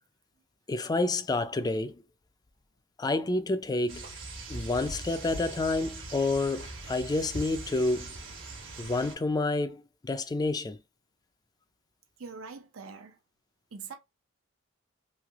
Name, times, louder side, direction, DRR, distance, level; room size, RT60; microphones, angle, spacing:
voice 1, 0.7-2.0 3.0-4.1 4.5-8.1 8.8-10.8, left 2 dB, 20° left, 0.3 m, -29 dB
sound 1, 3.9-9.1, right 2 dB, 65° right, 1.2 m, -41 dB
voice 2, 12.2-13.2 13.7-14.0, right 5 dB, 80° right, 0.6 m, -43 dB
3.2 x 2.7 x 2.4 m
head